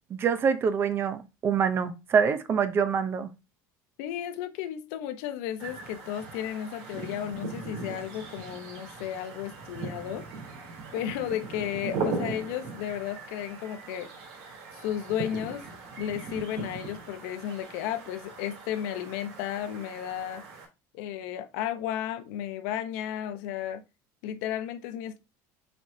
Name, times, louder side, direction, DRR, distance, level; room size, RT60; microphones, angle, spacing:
voice 1, 0.1-3.3, right 6 dB, 30° right, 0.7 m, -25 dB
voice 2, 4.0-10.2 10.9-14.1 14.8-15.7 16.0-20.4 20.9-23.8 24.2-25.2, left 11 dB, 80° left, 1.0 m, -33 dB
sound 1, 5.6-20.7, right 4 dB, 70° right, 3.5 m, -39 dB
7.6 x 4.8 x 2.8 m
cardioid pair, 155°, 8 cm